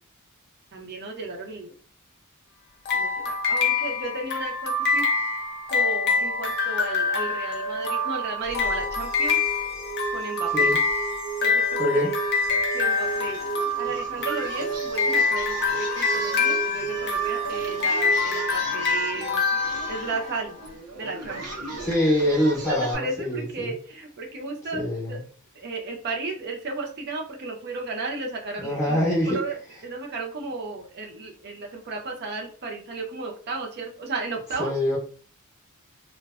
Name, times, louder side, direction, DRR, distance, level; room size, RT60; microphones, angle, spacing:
voice 1, 0.7-1.7 2.9-5.1 5.7-9.4 10.1-10.8 11.4-12.2 12.7-13.4 13.8-19.5 19.9-20.6 21.0-21.6 22.7-25.2 25.5-29.0 29.3-29.6 29.8-34.7, right 3 dB, 45° right, 2 dB, 0.6 m, -34 dB
sound 1, 2.9-20.5, left 4 dB, 50° left, 0.6 m, -26 dB
sound 2, 8.5-18.5, right 6 dB, 65° right, 1.0 m, -34 dB
voice 2, 11.8-12.1 21.8-23.7 24.7-25.2 28.6-29.4 34.6-35.0, equal, 15° left, -5 dB, 0.7 m, -24 dB
Singing, 13.0-22.9, right 2 dB, 90° right, 0.7 m, -37 dB
2.5 x 2.2 x 2.3 m, 0.41 s
head